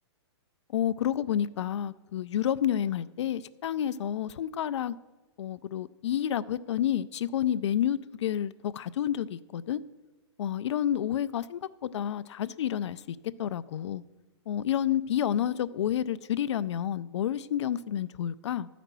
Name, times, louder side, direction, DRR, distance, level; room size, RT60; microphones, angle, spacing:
voice 1, 0.7-5.0 5.4-9.8 10.4-14.0 14.5-18.7, left 10 dB, 75° left, 15 dB, 0.4 m, -30 dB
11.5 x 5.1 x 6.7 m, 1.1 s
hypercardioid pair, 150°, 15 cm